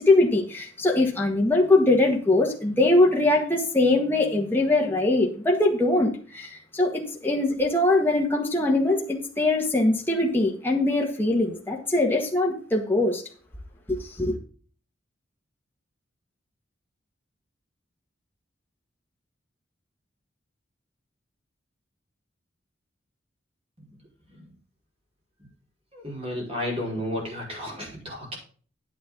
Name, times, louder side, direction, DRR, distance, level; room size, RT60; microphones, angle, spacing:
voice 1, 0.0-13.2 13.9-14.4, left 2 dB, 10° left, 1.8 m, -22 dB
voice 2, 25.9-28.4, left 1 dB, 30° right, 5.2 m, -32 dB
9.8 x 9.3 x 3.9 m
head